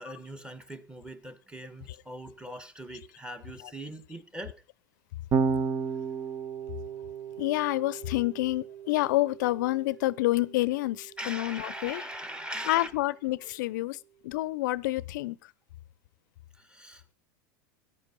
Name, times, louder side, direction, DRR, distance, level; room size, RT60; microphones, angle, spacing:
voice 1, 0.0-4.5 11.2-12.9 13.8-13.9 16.6-17.1, right 1 dB, 10° right, 1.7 m, -41 dB
Electric guitar / Bass guitar, 5.3-11.7, right 6 dB, 40° right, 1.2 m, -34 dB
voice 2, 7.4-12.0 12.7-14.0 14.2-15.4, left 18 dB, 70° left, 0.6 m, -28 dB
14.0 x 9.9 x 5.2 m
hypercardioid pair, 95°, 11 cm